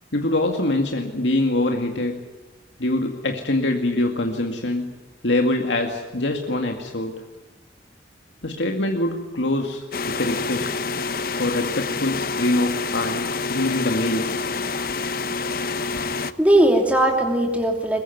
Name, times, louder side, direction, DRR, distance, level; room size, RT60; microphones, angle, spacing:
voice 1, 0.1-2.2 2.8-4.9 5.2-7.2 8.4-10.8 11.4-14.5, left 1 dB, 75° left, 3 dB, 2.2 m, -24 dB
sound 1, 9.9-16.3, left 4 dB, 50° left, 0.9 m, -27 dB
voice 2, 16.0-18.0, right 1 dB, 5° right, 2 dB, 2.9 m, -19 dB
22.0 x 22.0 x 9.5 m, 1.2 s
head